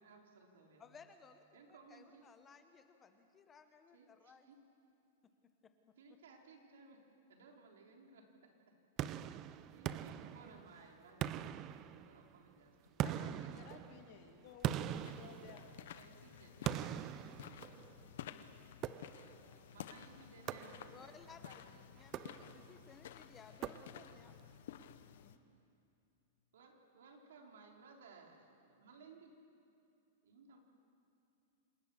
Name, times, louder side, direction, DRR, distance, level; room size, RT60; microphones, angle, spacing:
voice 1, 0.0-0.9 1.5-2.3 3.9-4.6 6.0-7.0 7.3-8.3 9.5-11.4 11.8-13.1 15.9-16.8 18.8-21.8 22.3-22.5 24.7-25.0 26.5-29.3 30.2-30.6, right 4 dB, 85° right, 1 dB, 4.0 m, -61 dB
voice 2, 0.8-4.5 5.6-5.7 20.9-24.4 25.2-25.4, left 5 dB, 15° left, 8 dB, 0.9 m, -60 dB
sound 1, 9.0-10.8 11.2-12.4 13.0-16.0 16.6-18.1 18.8-19.5 20.5-21.2 22.0-22.8 23.6-24.3, right 11 dB, 25° right, 0.4 m, -42 dB
voice 3, 13.0-15.8 17.5-17.8, left 7 dB, 45° left, 5 dB, 2.1 m, -56 dB
sound 2, 14.7-25.4, left 10 dB, 60° left, 1.0 m, -53 dB
26.5 x 18.5 x 7.1 m, 2.6 s
supercardioid pair, 170°, 0 cm